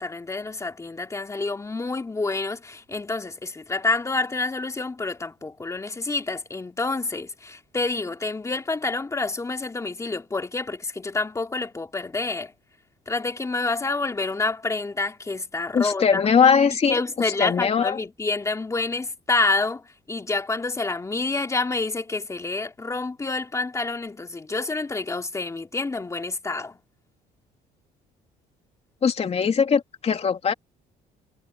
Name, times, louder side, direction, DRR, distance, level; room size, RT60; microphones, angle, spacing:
voice 1, 0.0-12.5 13.1-16.2 16.9-26.8, left 3 dB, 20° left, 2.8 m, -28 dB
voice 2, 15.7-18.0 29.0-30.5, left 6 dB, 35° left, 2.9 m, -21 dB
cardioid pair, 110°, 17 cm